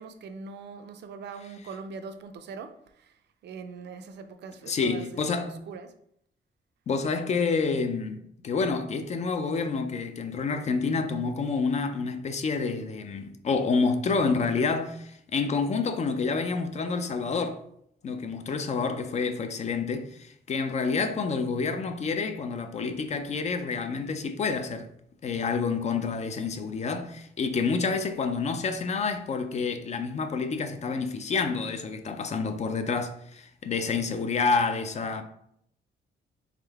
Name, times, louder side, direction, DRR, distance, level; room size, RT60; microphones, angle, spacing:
voice 1, 0.0-3.1 3.4-5.0 5.3-5.9, right 5 dB, 70° right, 0.5 m, -42 dB
voice 2, 4.7-5.6 6.9-17.6 18.0-24.9 25.2-35.2, left 4 dB, 40° left, 0.4 m, -28 dB
3.6 x 3.4 x 3.4 m
wide cardioid pair, 175°, 19 cm